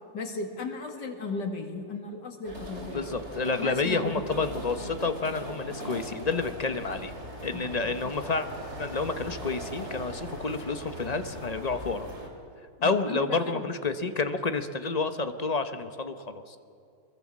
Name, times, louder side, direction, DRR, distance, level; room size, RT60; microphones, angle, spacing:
voice 1, 0.1-3.1 3.6-4.2 7.5-8.1 12.8-13.7, left 4 dB, 75° left, 4 dB, 2.9 m, -36 dB
sound 1, 2.4-12.3, equal, 40° right, 3.4 m, -40 dB
voice 2, 2.9-7.1 7.4-8.5 8.8-12.1 12.8-16.6, left 4 dB, 30° left, 9 dB, 0.9 m, -29 dB
24.0 x 22.5 x 7.6 m, 2.5 s
omnidirectional pair, 1.9 m